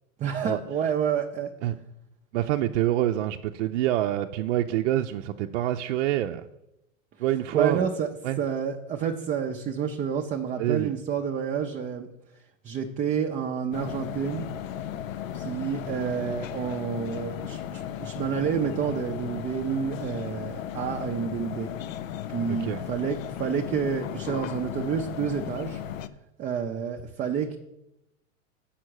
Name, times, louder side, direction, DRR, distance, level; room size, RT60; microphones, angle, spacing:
voice 1, 0.2-1.5 7.5-8.1 8.4-12.1 12.6-14.5 15.3-21.7 22.3-25.8 26.4-27.6, right 7 dB, 20° right, 3 dB, 0.5 m, -29 dB
voice 2, 2.3-6.4 7.2-7.9 8.2-8.4 10.6-10.9 22.5-22.8, right 13 dB, 60° right, 5 dB, 0.6 m, -26 dB
sound 1, 13.7-26.1, left 10 dB, 85° left, 0.7 m, -36 dB
7.4 x 5.8 x 6.3 m, 0.86 s
hypercardioid pair, 130°, 39 cm